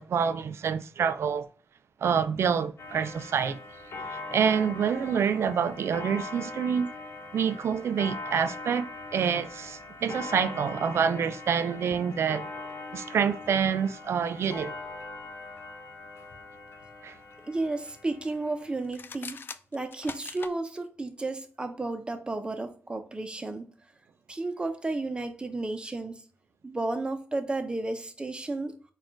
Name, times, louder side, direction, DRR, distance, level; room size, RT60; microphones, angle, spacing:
voice 1, 0.0-1.5 2.0-3.6 4.1-6.9 7.3-12.5 12.9-14.7 17.0-17.2, right 7 dB, 70° right, 0.4 m, -27 dB
Clock, 2.8-18.9, left 3 dB, 70° left, 1.0 m, -41 dB
voice 2, 17.5-19.4 19.7-23.7 24.3-26.1 26.6-28.7, right 2 dB, 20° right, 0.7 m, -32 dB
sound 1, 18.8-20.6, left 5 dB, 50° left, 0.3 m, -41 dB
4.2 x 2.5 x 4.4 m
cardioid pair, 105°, 5 cm